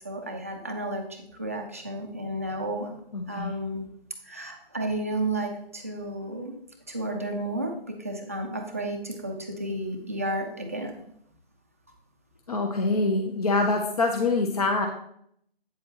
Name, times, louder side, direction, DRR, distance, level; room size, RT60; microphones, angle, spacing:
voice 1, 0.0-2.9 3.3-3.9 4.2-6.6 6.9-10.9, right 1 dB, 15° right, 1 dB, 0.4 m, -32 dB
voice 2, 3.1-3.5 12.5-14.9, left 3 dB, 40° left, 3 dB, 0.7 m, -25 dB
8.5 x 7.4 x 2.8 m, 0.71 s
figure-of-eight pair, 150°, 29 cm